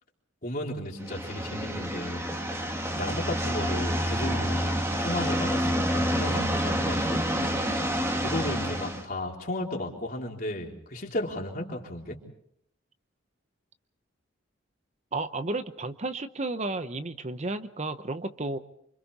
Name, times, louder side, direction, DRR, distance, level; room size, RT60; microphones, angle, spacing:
voice 1, 0.4-2.3 3.0-7.2 7.7-7.8 8.2-12.2, left 1 dB, 45° left, 0 dB, 3.7 m, -34 dB
sound 1, 1.0-9.0, equal, 15° right, 2.0 m, -28 dB
voice 2, 15.1-18.6, right 2 dB, 35° right, 10 dB, 0.8 m, -32 dB
28.5 x 25.5 x 4.1 m, 0.72 s
head